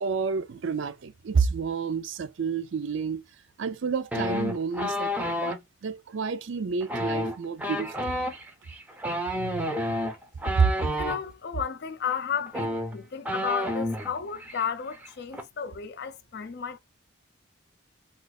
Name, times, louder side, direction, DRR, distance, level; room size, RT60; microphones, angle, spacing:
voice 1, 0.0-3.2 3.6-5.6 5.8-8.1 9.3-9.6 10.6-10.7, right 5 dB, 65° right, 0.4 m, -29 dB
sound 1, 4.1-5.6 6.8-11.2 12.1-12.2 12.5-14.1 14.4-14.7 14.9-15.4, left 1 dB, 5° right, 0.5 m, -30 dB
voice 2, 10.9-16.8, left 7 dB, 50° left, 0.4 m, -33 dB
2.4 x 2.4 x 4.0 m
head